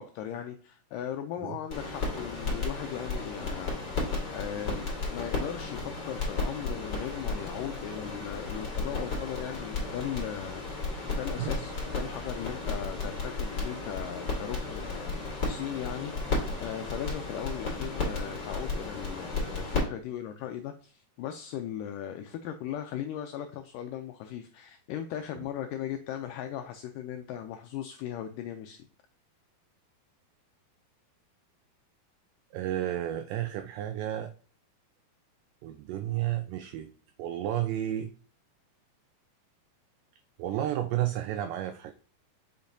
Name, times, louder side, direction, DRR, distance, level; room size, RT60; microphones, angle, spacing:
voice 1, 0.0-3.8 4.3-10.6 11.1-16.1 16.6-28.9, left 10 dB, 90° left, 7 dB, 1.9 m, -38 dB
sound 1, 1.7-19.8, left 3 dB, 35° left, 2.2 m, -34 dB
voice 2, 32.5-34.3 35.6-36.9 37.2-38.1 40.4-41.9, right 12 dB, 90° right, 8 dB, 1.9 m, -32 dB
7.1 x 5.6 x 2.6 m, 0.43 s
omnidirectional pair, 4.4 m